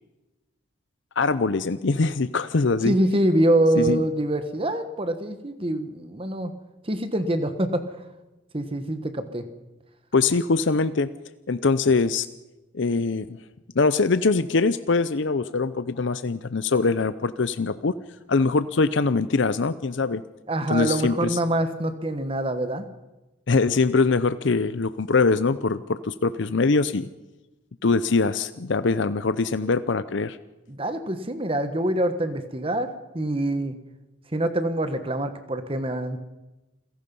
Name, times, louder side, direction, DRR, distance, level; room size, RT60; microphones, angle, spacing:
voice 1, 1.2-2.9 3.8-4.0 10.1-11.1 11.5-12.3 12.7-13.4 13.8-17.9 18.3-20.2 20.7-21.4 23.5-27.1 27.8-30.4, left 4 dB, 65° left, 13 dB, 0.6 m, -23 dB
voice 2, 2.8-6.5 6.8-8.0 8.5-9.4 20.5-22.9 30.7-33.7 34.3-36.2, right 1 dB, 25° right, 9 dB, 1.2 m, -25 dB
28.5 x 17.0 x 5.5 m, 1.1 s
head